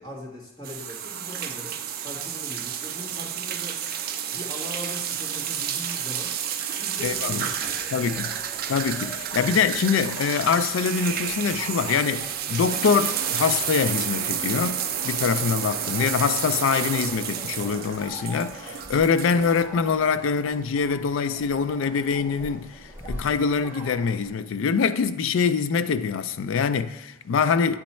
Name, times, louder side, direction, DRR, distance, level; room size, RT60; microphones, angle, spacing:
voice 1, 0.0-3.8 4.3-6.4 6.7-7.8, left 1 dB, 20° left, 1.8 m, -40 dB
sound 1, 0.6-19.7, right 9 dB, 45° right, 0.4 m, -30 dB
voice 2, 7.0-7.5 7.9-8.3 8.7-27.8, left 6 dB, 60° left, 0.3 m, -24 dB
sound 2, 7.0-24.3, right 1 dB, 10° right, 1.6 m, -44 dB
8.9 x 3.1 x 4.3 m
head